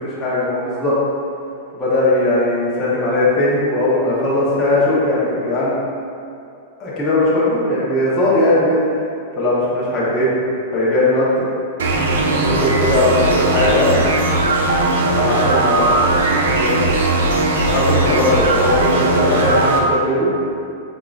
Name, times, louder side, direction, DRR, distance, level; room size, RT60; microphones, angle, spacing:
voice 1, 0.2-0.9 1.7-5.8 6.8-8.8 9.4-10.3 10.7-11.5 12.3-14.0 15.1-16.8 17.6-20.3, left 1 dB, 10° left, -10 dB, 0.7 m, -18 dB
sound 1, 11.8-19.8, right 2 dB, 80° right, 0.6 m, -18 dB
5.0 x 3.6 x 2.3 m, 2.5 s
supercardioid pair, 175°, 0 cm